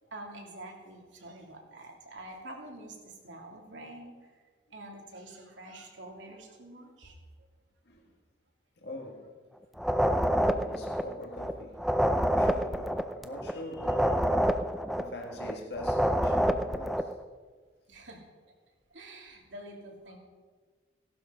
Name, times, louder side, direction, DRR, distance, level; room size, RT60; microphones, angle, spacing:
voice 1, 0.1-4.1 4.7-7.1 17.9-18.2 18.9-20.2, right 1 dB, 85° right, 3.1 m, -46 dB
voice 2, 8.8-9.3 9.8-11.9 12.1-14.7 15.0-17.1, left 1 dB, 60° left, 1.8 m, -43 dB
sound 1, 9.8-11.5 11.8-15.5 15.8-17.1, equal, ahead, 0.5 m, -27 dB
17.0 x 12.0 x 5.2 m
head